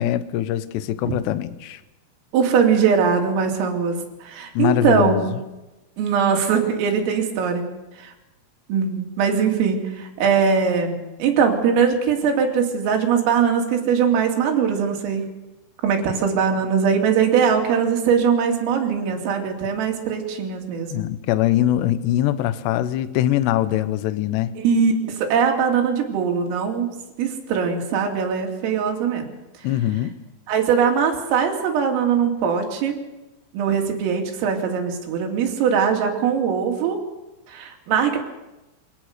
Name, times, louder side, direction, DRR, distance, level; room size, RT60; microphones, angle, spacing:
voice 1, 0.0-1.8 4.5-5.3 20.9-24.5 29.6-30.2, left 12 dB, 75° left, 13 dB, 2.7 m, -22 dB
voice 2, 2.3-5.3 6.0-7.6 8.0-8.1 8.7-15.4 15.8-21.1 24.6-29.3 30.5-33.0 33.5-37.0 37.5-38.2, right 6 dB, 80° right, 2 dB, 5.3 m, -21 dB
25.5 x 17.5 x 6.7 m, 1.0 s
omnidirectional pair, 5.8 m